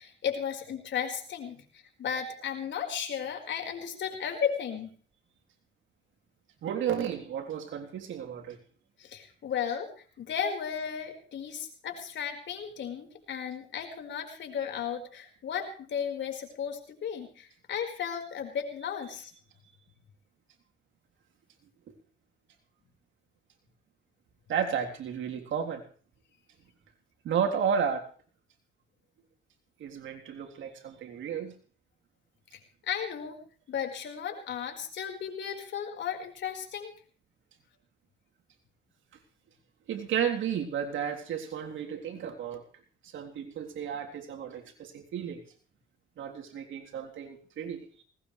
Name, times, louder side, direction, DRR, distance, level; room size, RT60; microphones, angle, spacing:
voice 1, 0.0-1.6 2.0-4.9 9.0-9.9 10.2-19.3 32.8-33.4 33.7-36.9, left 8 dB, 65° left, 4 dB, 4.8 m, -34 dB
voice 2, 6.6-8.6 24.5-25.8 27.2-28.1 29.8-31.5 39.9-42.6 43.0-45.4 46.2-48.0, right 8 dB, 75° right, 2 dB, 3.6 m, -33 dB
20.5 x 18.5 x 3.3 m, 0.42 s
cardioid pair, 90°, 20 cm